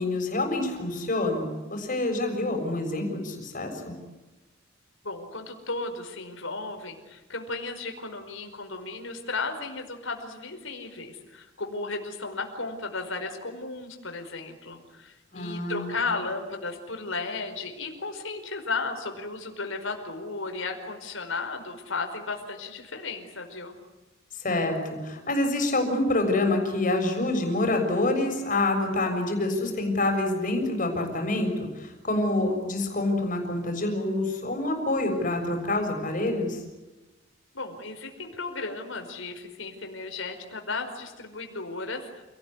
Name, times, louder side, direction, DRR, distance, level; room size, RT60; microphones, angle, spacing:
voice 1, 0.0-3.9 15.3-16.0 24.4-36.6, left 2 dB, 40° left, 4 dB, 6.8 m, -27 dB
voice 2, 5.0-23.8 37.5-42.2, left 3 dB, 75° left, 5 dB, 5.1 m, -34 dB
29.0 x 19.0 x 9.9 m, 1.1 s
head